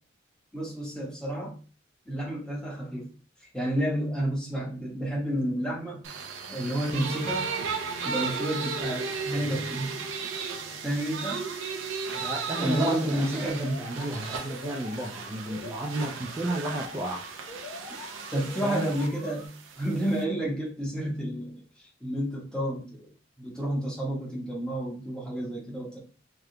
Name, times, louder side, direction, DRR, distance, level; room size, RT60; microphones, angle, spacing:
voice 1, 0.5-1.6 2.1-3.1 3.5-6.1 6.5-7.5 8.0-9.9 10.8-11.5 12.6-13.8 18.3-23.1 23.4-26.0, right 1 dB, 5° left, -5 dB, 1.1 m, -30 dB
sound 1, 6.0-20.2, right 5 dB, 85° right, 0.5 m, -35 dB
voice 2, 12.1-17.3 18.6-18.9, right 1 dB, 15° right, -2 dB, 0.4 m, -32 dB
Alarm, 13.5-19.5, left 3 dB, 60° left, 0.9 m, -44 dB
3.3 x 2.4 x 2.7 m, 0.37 s
head